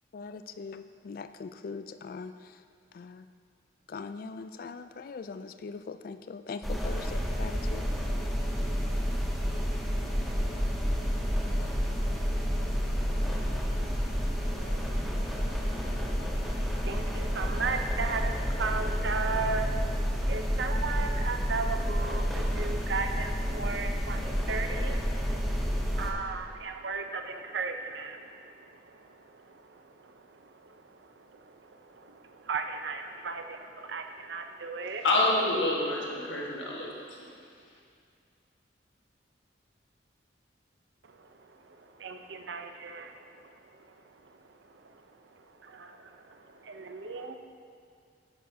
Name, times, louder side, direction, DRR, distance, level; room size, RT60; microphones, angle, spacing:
voice 1, 0.1-2.3 2.9-3.2 3.9-7.8, left 4 dB, 50° left, 10 dB, 0.3 m, -41 dB
sound 1, 6.6-26.1, equal, ahead, 0.7 m, -30 dB
voice 2, 15.7-35.0 36.2-37.3 41.0-47.4, right 4 dB, 75° right, 6 dB, 0.6 m, -37 dB
voice 3, 35.0-37.2, left 2 dB, 80° left, -2 dB, 1.5 m, -27 dB
11.0 x 8.7 x 2.8 m, 2.3 s
head